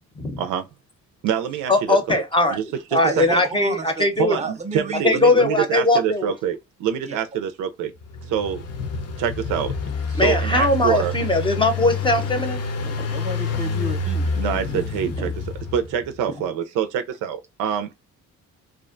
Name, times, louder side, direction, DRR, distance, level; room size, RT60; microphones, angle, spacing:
voice 1, 0.4-0.7 1.2-2.2 2.5-2.6 2.9-3.4 4.2-7.9 8.3-8.6 9.2-9.7 10.1-11.1 14.4-17.9, right 8 dB, 90° right, 0.5 m, -25 dB
voice 2, 1.7-2.6 2.9-4.4 5.0-6.3 10.2-13.1 14.7-15.1, left 2 dB, 15° left, 0.6 m, -20 dB
voice 3, 3.0-5.0 5.6-5.7 7.1-7.2 13.1-14.4, right 3 dB, 25° right, 0.7 m, -31 dB
Engine, 8.0-16.1, left 3 dB, 55° left, 0.6 m, -28 dB
2.5 x 2.2 x 2.5 m
cardioid pair, 90°, 30 cm